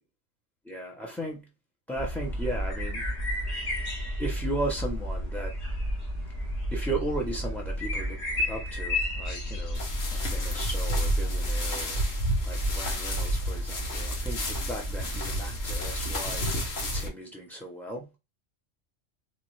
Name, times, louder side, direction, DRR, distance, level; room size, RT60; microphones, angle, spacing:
voice 1, 0.6-1.4 1.9-3.1 3.8-3.9 4.2-5.5 6.7-8.2 8.5-9.8 10.1-16.5 16.9-18.1, right 1 dB, 5° left, 0.3 m, -36 dB
sound 1, 2.0-16.7, equal, 60° left, 1.5 m, -32 dB
sound 2, 9.7-17.1, equal, 85° left, 1.5 m, -32 dB
4.1 x 2.4 x 3.0 m
omnidirectional pair, 1.3 m